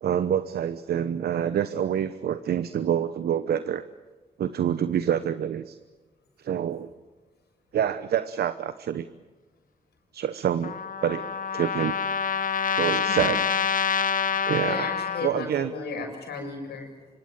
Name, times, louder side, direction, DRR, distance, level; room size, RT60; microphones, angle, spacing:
voice 1, 0.0-3.8 4.4-5.8 6.4-6.9 7.7-9.0 10.1-10.7 11.0-12.0 12.7-13.4 14.5-14.9 15.2-15.7, right 9 dB, 75° right, 12 dB, 1.0 m, -27 dB
Trumpet, 10.6-15.3, left 6 dB, 55° left, 1.1 m, -27 dB
voice 2, 14.2-17.1, left 4 dB, 80° left, 3 dB, 7.4 m, -35 dB
25.0 x 24.5 x 9.3 m, 1.3 s
cardioid pair, 60°, 17 cm